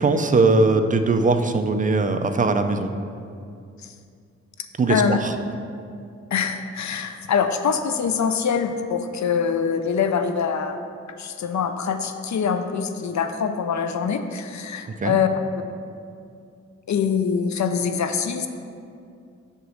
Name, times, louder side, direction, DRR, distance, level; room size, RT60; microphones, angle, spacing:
voice 1, 0.0-2.9 4.8-5.4 15.0-15.2, right 3 dB, 30° right, 7 dB, 0.4 m, -20 dB
voice 2, 6.3-10.9 11.2-15.3 16.9-18.5, left 6 dB, 70° left, 8 dB, 0.5 m, -24 dB
7.8 x 3.1 x 6.3 m, 2.4 s
wide cardioid pair, 105°, 29 cm